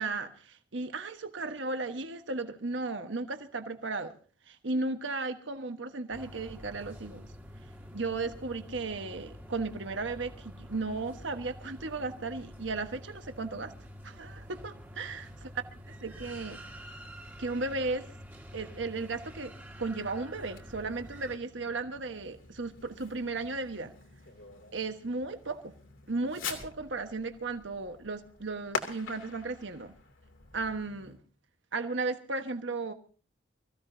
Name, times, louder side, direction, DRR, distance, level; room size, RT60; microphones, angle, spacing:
voice 1, 0.0-4.1 4.5-7.3 7.9-13.7 14.0-16.6 17.4-18.1 18.5-19.5 19.8-23.9 24.7-25.7 26.1-29.9 30.5-31.2 31.7-32.9, right 3 dB, 70° right, 1.3 m, -35 dB
sound 1, 6.1-21.4, equal, 10° right, 1.7 m, -48 dB
Fireworks, 20.5-31.2, left 4 dB, 85° left, 2.8 m, -44 dB
24.5 x 15.0 x 2.7 m
head